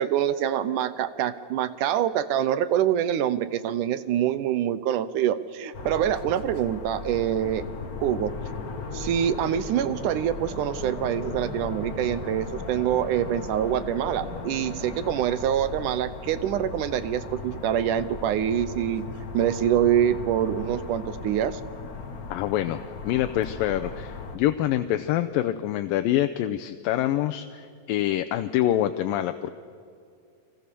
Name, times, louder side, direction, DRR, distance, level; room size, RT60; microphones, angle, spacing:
voice 1, 0.0-7.6 8.0-8.3 8.9-19.0 19.3-21.6, right 10 dB, 75° right, 14 dB, 2.1 m, -25 dB
sound 1, 5.7-24.4, left 4 dB, 60° left, 0.9 m, -38 dB
sound 2, 7.1-15.1, left 2 dB, 25° left, 3.9 m, -40 dB
voice 2, 22.3-22.8 23.0-29.5, left 12 dB, 80° left, 9 dB, 2.4 m, -26 dB
30.0 x 23.5 x 6.9 m, 2.4 s
omnidirectional pair, 4.1 m